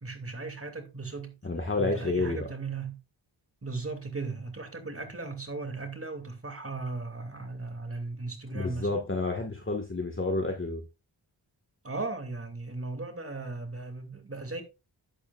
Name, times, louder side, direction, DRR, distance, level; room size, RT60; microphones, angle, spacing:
voice 1, 0.0-1.4 1.8-3.0 3.6-9.0 11.8-14.6, right 3 dB, 30° right, 2.8 m, -37 dB
voice 2, 1.4-2.4 8.5-10.8, left 3 dB, 25° left, 1.8 m, -29 dB
11.5 x 8.6 x 2.5 m
wide cardioid pair, 75°, 46 cm